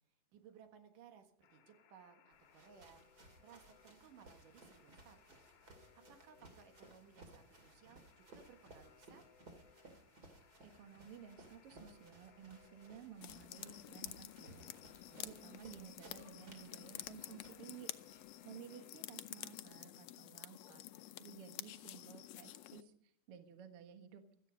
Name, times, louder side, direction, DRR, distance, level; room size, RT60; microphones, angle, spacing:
voice 1, 0.3-5.5 5.7-9.3 15.1-16.0, right 7 dB, 75° right, 7 dB, 3.2 m, -62 dB
Alarm, 1.4-19.6, left 8 dB, 55° left, 2.1 m, -68 dB
sound 1, 2.3-18.3, right 2 dB, 30° right, 2.5 m, -61 dB
voice 2, 10.6-14.7 15.2-17.9 18.4-20.8 21.2-24.2, right 8 dB, 55° right, 8 dB, 2.0 m, -55 dB
sound 2, 13.2-22.8, left 14 dB, 85° left, 1.4 m, -50 dB
16.5 x 13.5 x 5.2 m, 0.65 s
omnidirectional pair, 3.8 m